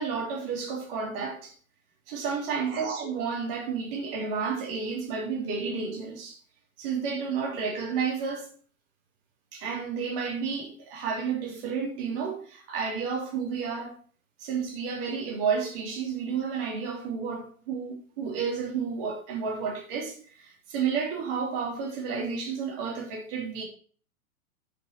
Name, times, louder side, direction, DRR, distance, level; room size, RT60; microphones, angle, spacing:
voice 1, 0.0-1.5 2.1-6.4 6.8-8.5 9.5-13.9 14.4-23.6, right 6 dB, 40° right, 3.3 m, -31 dB
7.8 x 7.6 x 4.7 m
figure-of-eight pair, 100°, 41 cm